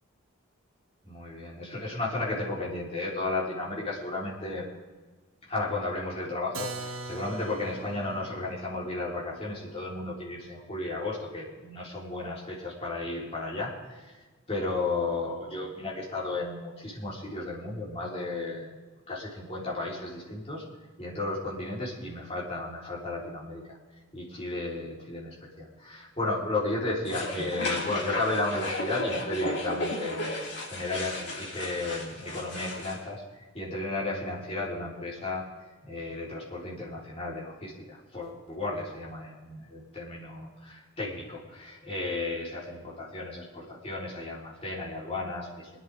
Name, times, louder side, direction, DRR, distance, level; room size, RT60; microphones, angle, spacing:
voice 1, 1.0-4.7 5.5-14.1 14.5-18.7 19.1-20.6 21.0-23.6 24.1-30.4 30.7-33.2 33.5-35.4 35.8-45.7, left 2 dB, 30° left, -6 dB, 4.3 m, -34 dB
Keyboard (musical), 6.5-12.2, right 3 dB, 90° right, 1.2 m, -43 dB
sound 1, 27.1-33.0, left 1 dB, 55° left, 3.2 m, -34 dB
24.0 x 10.5 x 3.8 m, 1.3 s
head